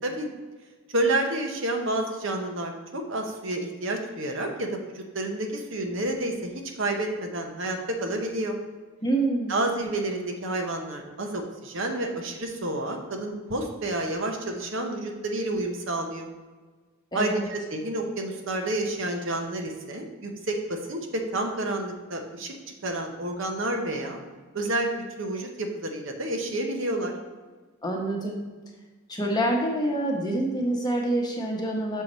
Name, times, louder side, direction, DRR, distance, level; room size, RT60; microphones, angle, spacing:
voice 1, 0.9-8.6 9.5-16.3 17.1-22.5 22.8-24.2 24.5-24.9 25.2-27.1, right 1 dB, 55° right, 3 dB, 0.9 m, -29 dB
voice 2, 9.0-9.6 17.1-17.5 27.8-28.5 29.1-32.0, right 1 dB, 20° left, 0 dB, 0.9 m, -26 dB
6.4 x 4.6 x 5.3 m, 1.4 s
head